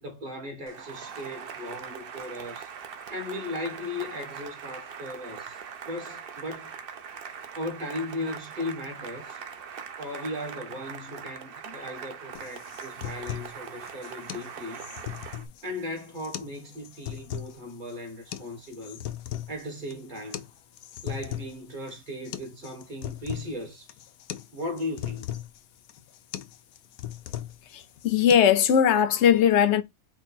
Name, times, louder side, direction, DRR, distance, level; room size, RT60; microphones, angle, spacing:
voice 1, 0.0-2.7 3.1-5.6 5.9-6.7 7.5-9.4 10.0-14.9 15.6-19.0 19.5-20.4 21.0-23.9 24.5-25.3, left 1 dB, 35° right, 1.4 m, -37 dB
Cheering / Applause, 0.7-15.5, right 7 dB, 55° right, 0.7 m, -41 dB
sound 1, 12.3-28.3, left 12 dB, 85° left, 1.1 m, -39 dB
voice 2, 28.0-29.8, left 8 dB, 60° left, 0.8 m, -19 dB
4.5 x 2.2 x 4.4 m
omnidirectional pair, 1.5 m